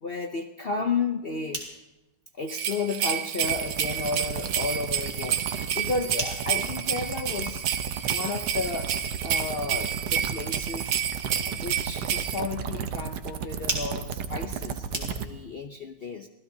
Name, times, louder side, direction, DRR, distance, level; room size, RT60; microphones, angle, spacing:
voice 1, 0.0-1.6 2.3-5.4 5.7-7.7 8.1-11.0 11.4-16.3, left 4 dB, 70° left, 5 dB, 0.5 m, -32 dB
sound 1, 1.1-15.6, right 1 dB, 20° right, 2.9 m, -42 dB
sound 2, 2.5-12.4, right 9 dB, 85° right, 1.6 m, -30 dB
sound 3, 3.4-15.3, right 7 dB, 70° right, 1.4 m, -34 dB
25.5 x 16.5 x 2.7 m, 1.0 s
omnidirectional pair, 2.0 m